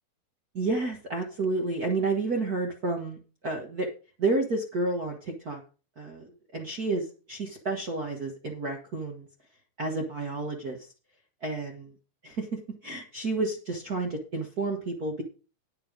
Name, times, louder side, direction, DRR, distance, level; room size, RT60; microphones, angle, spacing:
voice 1, 0.5-3.2 3.4-3.9 4.2-5.6 6.0-9.3 9.8-10.8 11.4-11.9 12.2-12.5 12.8-15.2, right 3 dB, 75° right, 1 dB, 0.8 m, -30 dB
9.4 x 8.7 x 5.1 m, 0.35 s
omnidirectional pair, 4.2 m